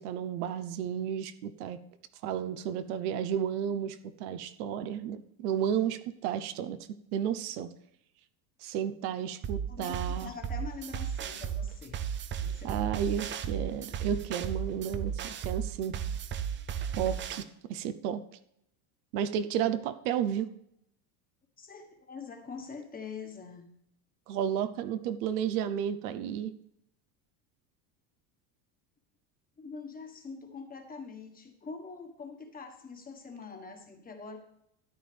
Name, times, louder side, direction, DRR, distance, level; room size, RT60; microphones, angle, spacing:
voice 1, 0.0-1.8 2.2-6.8 7.1-7.7 8.6-10.3 12.6-15.9 16.9-18.2 19.1-20.5 24.3-26.5, right 9 dB, 80° right, 12 dB, 0.9 m, -32 dB
sound 1, 9.4-17.4, right 8 dB, 25° right, 0.5 m, -35 dB
voice 2, 9.7-12.0 12.4-12.9 21.6-23.7 29.6-34.4, left 5 dB, 20° left, 4 dB, 1.4 m, -44 dB
13.0 x 9.3 x 3.4 m, 0.76 s
supercardioid pair, 135°, 45 cm